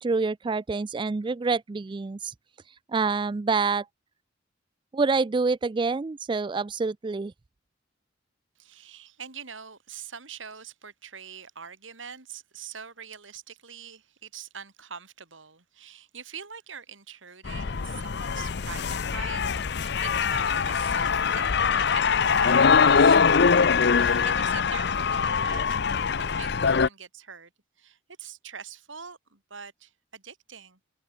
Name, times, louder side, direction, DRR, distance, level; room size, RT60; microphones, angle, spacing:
voice 1, 0.0-2.3 2.9-3.9 4.9-7.3, right 4 dB, 25° right, 0.3 m, -27 dB
voice 2, 8.6-19.4 19.7-25.8 26.0-27.5 27.8-30.8, right 7 dB, 80° right, 3.3 m, -44 dB
sound 1, 17.4-26.9, left 5 dB, 55° left, 0.6 m, -23 dB
head